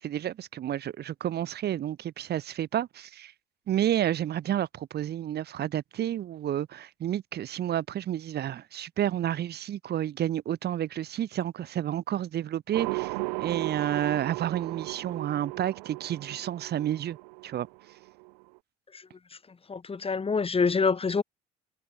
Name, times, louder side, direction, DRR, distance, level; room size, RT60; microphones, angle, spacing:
voice 1, 0.0-3.3 3.7-13.1 13.4-17.2 17.4-17.7, right 11 dB, 55° right, 5.1 m, -30 dB
sound 1, 12.7-18.6, right 34 dB, 75° right, 2.2 m, -36 dB
voice 2, 19.7-21.2, left 5 dB, 30° left, 3.9 m, -26 dB
hypercardioid pair, 60°, 20 cm